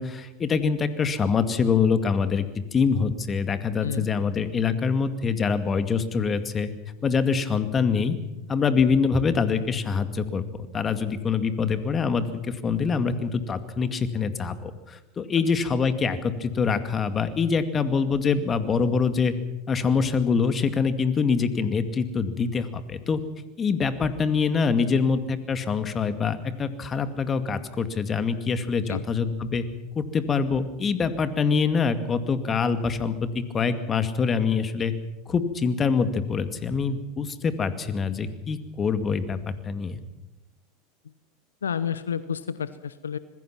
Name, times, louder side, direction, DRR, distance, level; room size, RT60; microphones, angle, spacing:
voice 1, 0.0-6.7 7.0-8.2 8.5-10.4 10.7-19.3 19.7-23.2 23.6-29.6 30.0-34.9 35.3-40.0, left 5 dB, 25° left, 10 dB, 2.2 m, -25 dB
voice 2, 41.6-43.2, left 7 dB, 80° left, 15 dB, 0.8 m, -30 dB
26.0 x 20.5 x 6.0 m, 1.0 s
hypercardioid pair, 85°, 0 cm